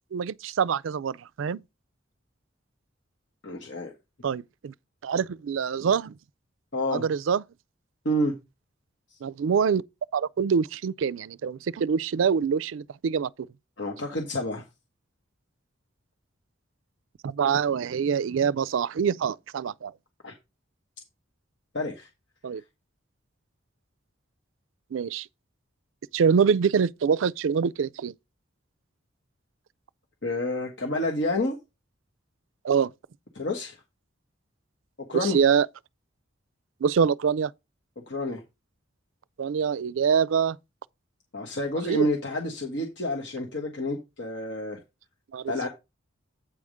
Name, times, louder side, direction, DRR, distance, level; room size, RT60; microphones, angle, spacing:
voice 1, 0.1-1.6 4.2-4.7 5.0-6.1 6.9-7.4 9.2-9.8 10.1-13.3 17.2-19.9 22.4-22.6 24.9-25.3 26.1-28.1 32.6-32.9 35.1-35.7 36.8-37.5 39.4-40.6 41.9-42.1 45.3-45.5, right 6 dB, 80° right, 0.4 m, -25 dB
voice 2, 3.4-3.9 6.7-7.1 8.0-8.3 13.8-14.6 20.2-20.3 21.7-22.1 30.2-31.5 33.3-33.8 35.1-35.4 38.1-38.4 41.3-44.8 45.5-45.7, left 1 dB, 65° left, 1.5 m, -29 dB
8.8 x 3.6 x 6.3 m
head